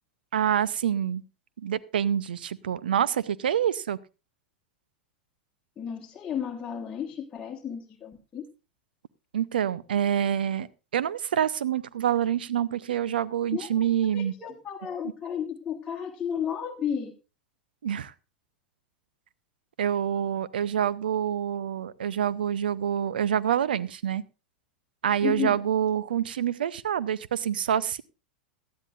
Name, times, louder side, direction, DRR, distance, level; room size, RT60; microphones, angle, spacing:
voice 1, 0.3-1.2 1.6-4.0 9.3-10.7 10.9-14.3 17.8-18.1 19.8-24.2 25.0-28.0, right 9 dB, 70° right, 19 dB, 0.6 m, -26 dB
voice 2, 5.8-8.5 13.5-13.7 14.1-17.1 25.2-25.6, left 8 dB, 20° left, 0 dB, 1.5 m, -33 dB
18.0 x 12.5 x 2.5 m, 0.30 s
figure-of-eight pair, 95°, 5 cm